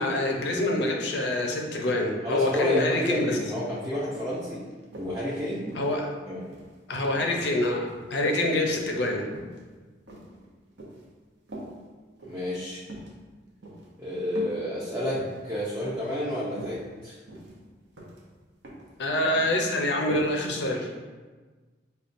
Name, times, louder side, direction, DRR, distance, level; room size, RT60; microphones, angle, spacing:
voice 1, 0.0-3.4 5.8-6.1 6.9-9.3 19.0-20.9, left 1 dB, 65° left, 2 dB, 0.5 m, -26 dB
voice 2, 2.2-4.6 5.0-5.9 6.3-6.5 12.2-12.8 14.0-17.1, left 1 dB, 15° right, -9 dB, 0.5 m, -30 dB
sound 1, 2.9-3.0 3.4-3.6 4.1-5.2 5.7-6.8 7.2-8.1 8.6-8.9 9.3-9.6 10.1-11.1 11.5-11.7 12.2-12.4 12.8-13.1 13.6-13.9 14.4-14.6 15.0-15.4 15.8-16.1 16.4-16.8 17.3-17.6 18.0-18.2 18.6-18.9 19.2-19.6 20.1-20.3 20.7-20.8, right 1 dB, 70° right, 0.7 m, -42 dB
5.2 x 2.2 x 2.5 m, 1.4 s
head